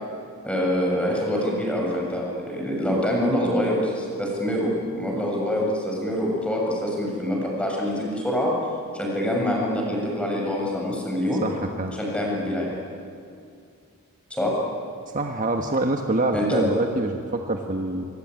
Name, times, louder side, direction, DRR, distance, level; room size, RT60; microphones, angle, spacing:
voice 1, 0.4-8.5 8.9-11.4 12.0-12.8 14.3-14.5 16.3-16.6, equal, 5° left, -2 dB, 7.3 m, -25 dB
voice 2, 11.4-12.0 15.1-18.0, right 2 dB, 40° right, 3 dB, 1.5 m, -25 dB
25.5 x 23.5 x 9.6 m, 2.4 s
head